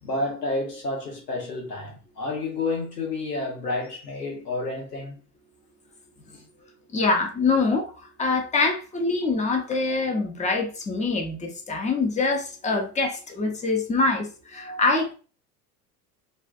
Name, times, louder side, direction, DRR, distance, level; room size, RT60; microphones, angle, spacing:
voice 1, 0.0-5.2 6.3-6.4, left 2 dB, 85° left, 1.1 m, -30 dB
voice 2, 6.9-7.9 8.2-15.1, left 3 dB, 15° left, 0.6 m, -24 dB
2.4 x 2.3 x 2.2 m
figure-of-eight pair, 70°, 47 cm